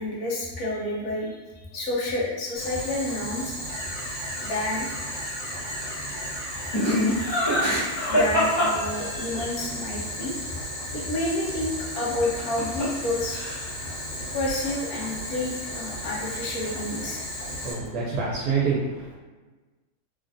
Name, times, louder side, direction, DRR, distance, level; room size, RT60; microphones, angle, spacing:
voice 1, 0.0-3.6 4.4-4.9 6.4-6.9 8.1-10.4 10.9-13.6 14.3-17.2 17.7-17.8, left 1 dB, 70° left, -4 dB, 1.2 m, -30 dB
Boiling, 2.5-17.7, equal, 45° left, 1.5 m, -35 dB
sound 1, 3.7-9.2, equal, 60° right, 1.4 m, -39 dB
Laughter, 6.7-9.4 12.2-13.0 13.3-13.8, equal, 25° left, 0.6 m, -24 dB
voice 2, 17.6-19.2, right 5 dB, 75° right, -5 dB, 1.2 m, -27 dB
3.2 x 2.4 x 2.5 m, 1.3 s
omnidirectional pair, 1.8 m